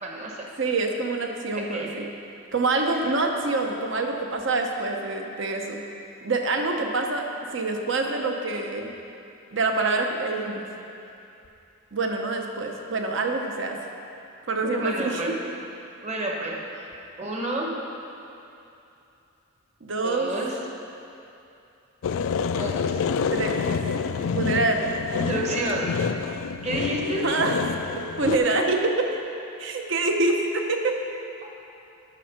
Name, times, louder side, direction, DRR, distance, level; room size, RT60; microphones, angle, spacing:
voice 1, 0.0-0.5 1.5-1.9 2.8-3.1 14.6-15.3 16.0-16.9 17.2-17.9 20.0-20.6 22.5-23.1 25.1-26.0 26.6-27.2, right 2 dB, 35° right, -1 dB, 1.1 m, -30 dB
voice 2, 0.6-2.1 2.5-5.8 6.2-7.2 7.5-8.9 9.5-10.7 11.9-13.8 14.5-15.4 19.8-20.3 23.3-23.7 24.3-24.9 27.2-27.6 28.2-29.1 29.6-31.0, right 3 dB, 60° right, 3 dB, 0.8 m, -26 dB
sound 1, 22.0-28.4, left 6 dB, 75° left, 0.3 m, -27 dB
8.9 x 6.4 x 5.9 m, 2.8 s
head